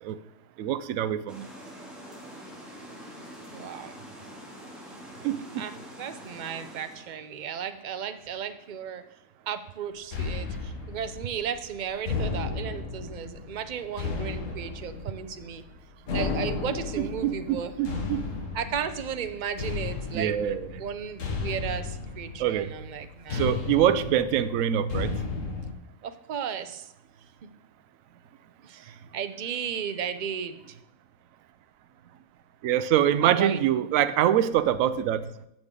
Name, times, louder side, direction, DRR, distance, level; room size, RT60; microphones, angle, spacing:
voice 1, 0.6-1.5 5.2-5.7 17.0-18.3 20.1-20.7 22.4-22.7 23.3-25.2 32.6-35.3, right 10 dB, 70° right, 12 dB, 1.0 m, -25 dB
sound 1, 1.3-7.1, equal, ahead, 2.3 m, -45 dB
voice 2, 3.5-4.0 5.6-9.0 9.5-15.6 16.1-17.7 18.5-20.4 20.8-23.5 26.0-26.9 28.6-30.8 33.2-33.6, right 8 dB, 50° right, 10 dB, 0.6 m, -34 dB
sound 2, 10.1-25.7, left 4 dB, 65° left, 1.6 m, -34 dB
15.0 x 6.6 x 3.8 m, 0.83 s
omnidirectional pair, 1.5 m